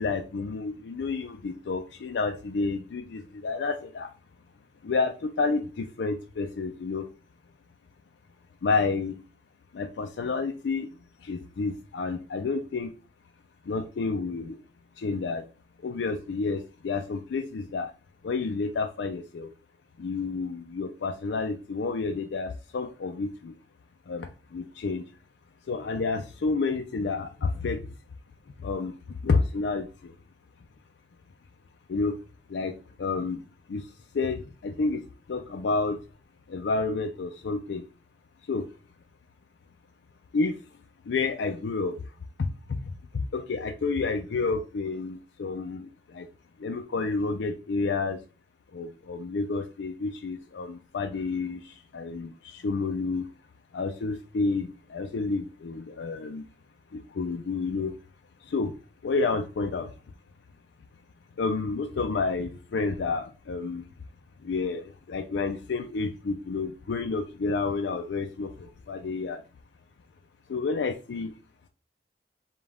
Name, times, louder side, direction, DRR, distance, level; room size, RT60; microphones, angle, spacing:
voice 1, 0.0-4.1 4.8-7.1 8.6-9.2 9.7-10.9 11.2-12.9 13.6-14.6 15.0-15.5 15.8-17.9 18.2-19.5 20.0-23.5 24.1-25.0 25.7-28.0 28.6-30.1 31.9-32.2 32.5-36.0 36.5-37.8 38.5-38.7 40.3-40.6 41.0-42.0 42.4-46.3 46.6-48.2 48.7-53.3 53.7-56.5 56.9-57.9 58.4-58.7 59.0-59.9 61.4-63.8 64.4-69.4 70.5-71.3, left 4 dB, 80° left, 5 dB, 0.4 m, -30 dB
5.2 x 2.3 x 3.5 m, 0.34 s
head